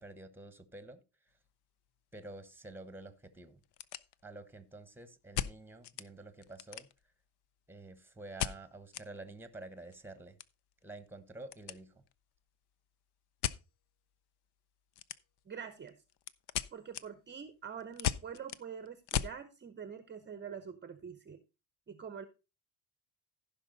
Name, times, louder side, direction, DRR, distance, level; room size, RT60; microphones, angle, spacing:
voice 1, 0.0-1.4 2.1-3.6 4.2-7.1 7.7-10.4 10.8-12.0, right 2 dB, 5° right, 1.0 m, -49 dB
sound 1, 1.3-1.5 1.9-2.0 2.6-2.7 2.9-3.0 3.5-4.5 5.3-6.1 6.4-7.2 8.4-9.1 9.4-9.5 9.8-11.8 12.1-12.4 13.4-13.6 14.9-15.5 15.9-19.4, left 11 dB, 55° left, 0.6 m, -38 dB
voice 2, 15.5-15.9 16.7-21.4 21.9-22.2, right 7 dB, 20° right, 0.7 m, -45 dB
15.0 x 5.7 x 3.9 m
cardioid pair, 125°, 48 cm